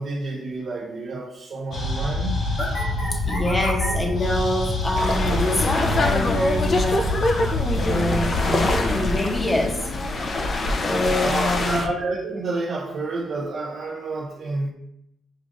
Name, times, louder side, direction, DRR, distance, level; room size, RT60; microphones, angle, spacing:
voice 1, 0.0-2.5 11.2-14.7, right 3 dB, 60° right, 0.5 m, -29 dB
sound 1, 1.7-10.2, left 2 dB, 65° left, 1.4 m, -26 dB
voice 2, 3.1-7.1 7.8-9.8 10.8-11.8, left 1 dB, 20° left, 0.8 m, -25 dB
sound 2, 4.9-11.9, left 2 dB, 45° left, 0.5 m, -24 dB
6.3 x 2.4 x 2.5 m
cardioid pair, 90°, 0 cm